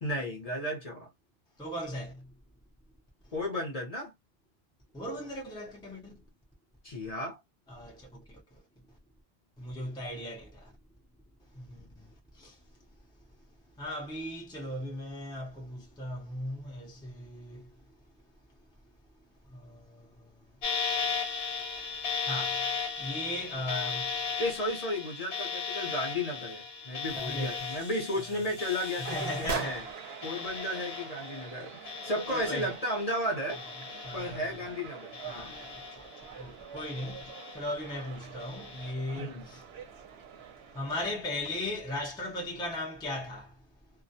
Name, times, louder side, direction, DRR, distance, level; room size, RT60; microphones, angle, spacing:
voice 1, 0.0-1.1 3.3-4.1 6.8-7.4 24.4-29.8 30.2-33.6 34.1-35.6 39.1-39.5, left 1 dB, 40° left, 0.8 m, -34 dB
voice 2, 1.6-2.3 4.9-6.2 7.7-8.4 9.6-10.7 11.5-12.6 13.8-17.7 19.5-20.5 22.2-22.7 23.0-24.2 27.1-27.7 28.3-28.5 29.1-29.7 32.3-32.7 34.0-34.7 35.2-37.2 37.5-39.7 40.7-43.6, left 1 dB, 5° left, 0.6 m, -38 dB
sound 1, 20.6-33.2 33.5-34.7 35.1-36.3 36.8-37.8 38.4-38.9, left 6 dB, 75° left, 0.9 m, -37 dB
sound 2, 27.0-30.1, right 4 dB, 55° right, 0.5 m, -42 dB
sound 3, 29.0-41.1, right 7 dB, 80° right, 0.8 m, -46 dB
2.3 x 2.1 x 2.7 m
omnidirectional pair, 1.1 m